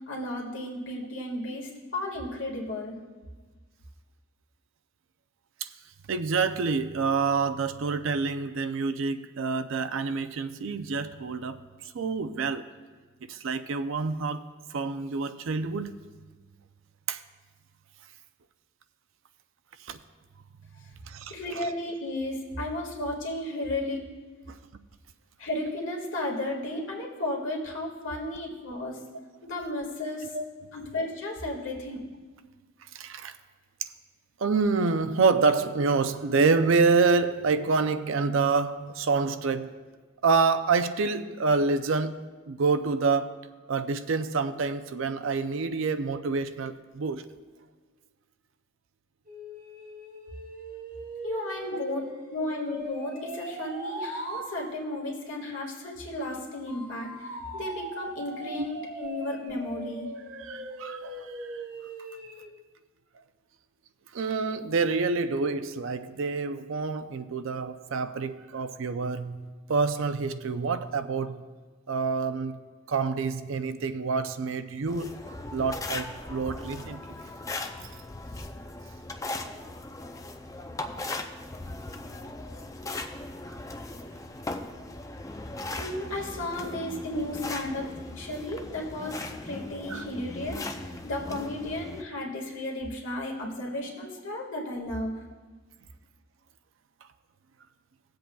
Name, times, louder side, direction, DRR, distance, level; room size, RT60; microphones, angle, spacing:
voice 1, 0.1-3.0 21.3-24.0 25.4-29.0 29.4-30.3 30.7-32.0 51.2-60.1 85.8-87.9 88.2-89.2 89.4-95.1, left 1 dB, 65° left, -1 dB, 1.8 m, -34 dB
voice 2, 6.1-11.6 11.8-12.6 13.3-14.4 14.7-15.9 17.1-17.2 19.9-20.0 21.0-21.3 24.5-24.6 30.2-30.7 32.9-33.3 34.4-39.7 40.2-42.2 42.5-43.3 43.7-47.3 58.6-58.7 60.3-61.6 64.1-71.4 71.9-72.6 72.9-77.0 89.9-90.0, right 4 dB, 65° right, 11 dB, 0.5 m, -27 dB
sound 1, 49.3-54.5 56.7-62.5, right 1 dB, 40° right, 1.1 m, -40 dB
sound 2, 74.9-92.0, left 2 dB, 15° left, 0.4 m, -38 dB
18.0 x 7.8 x 2.3 m, 1.4 s
head